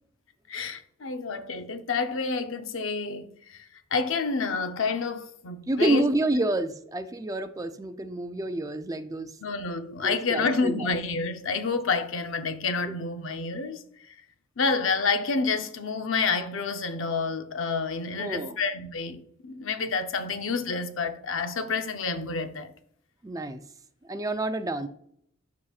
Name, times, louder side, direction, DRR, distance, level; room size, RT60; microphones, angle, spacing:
voice 1, 0.5-3.6 3.9-6.0 9.4-13.8 14.6-22.7, left 4 dB, 65° left, 0.7 m, -29 dB
voice 2, 5.7-9.3 10.0-10.9 18.2-18.6 23.2-23.6 24.0-24.9, right 1 dB, 15° right, 0.4 m, -28 dB
12.5 x 4.2 x 2.4 m
head